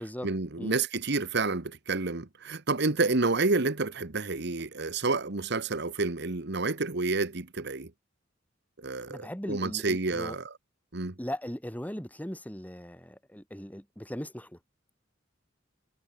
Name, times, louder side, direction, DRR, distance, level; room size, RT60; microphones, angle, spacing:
voice 1, 0.2-7.9 8.8-10.5 10.9-11.1, right 3 dB, 60° right, 1.4 m, -29 dB
voice 2, 9.1-10.4 11.2-14.6, equal, 10° left, 4.1 m, -38 dB
head